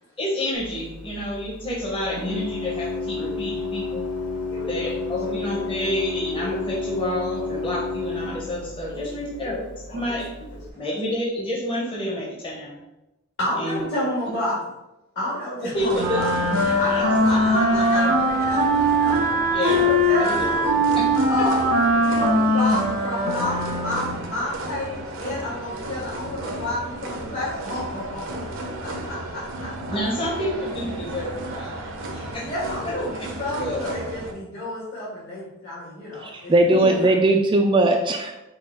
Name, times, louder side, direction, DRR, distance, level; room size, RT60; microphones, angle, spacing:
voice 1, 0.2-4.1 4.7-9.6 9.9-10.3 10.7-12.8 13.6-13.8 15.6-18.3 19.5-19.9 20.2-21.0 21.4-21.5 29.9-32.4 33.6-33.8 36.7-37.0, left 1 dB, 25° left, -4 dB, 0.9 m, -29 dB
Organ, 0.5-10.7, left 3 dB, 90° left, 0.7 m, -31 dB
voice 2, 4.5-4.9 5.2-5.3 5.8-5.9 6.3-6.4 8.9-9.6 9.9-10.2 10.7-10.9 13.4-14.5 15.1-16.3 16.8-19.2 19.7-20.6 21.3-29.7 32.4-33.1 33.4-37.1, left 1 dB, 55° left, -9 dB, 1.5 m, -30 dB
sound 1, 15.8-34.3, right 2 dB, 65° right, 0.7 m, -34 dB
Wind instrument woodwind instrument, 16.0-24.2, equal, 90° right, 1.1 m, -21 dB
voice 3, 36.2-38.3, right 2 dB, 25° right, 3 dB, 0.3 m, -19 dB
5.1 x 2.3 x 4.4 m, 0.95 s
head